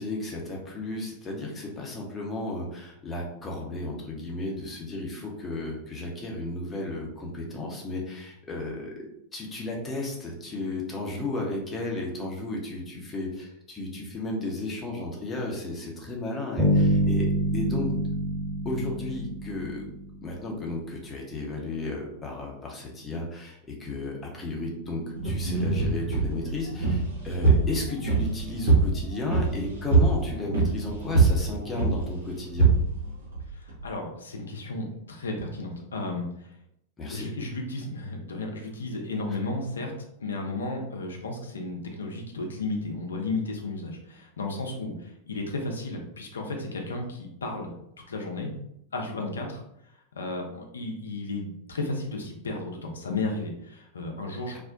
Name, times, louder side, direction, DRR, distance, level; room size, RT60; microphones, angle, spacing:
voice 1, 0.0-9.1 9.3-18.0 18.6-19.9 20.2-32.7 37.0-37.3 39.3-39.4 54.5-54.6, left 2 dB, 20° left, -2 dB, 0.6 m, -34 dB
Bass guitar, 16.6-20.4, equal, 25° right, 1.1 m, -26 dB
sound 1, 25.2-33.8, right 4 dB, 70° right, 0.8 m, -24 dB
voice 2, 33.6-36.3 37.1-47.7 48.1-48.5 48.9-49.6 50.2-54.6, left 2 dB, 70° left, 2 dB, 0.5 m, -33 dB
2.4 x 2.1 x 2.4 m, 0.76 s
figure-of-eight pair, 90°, 0 cm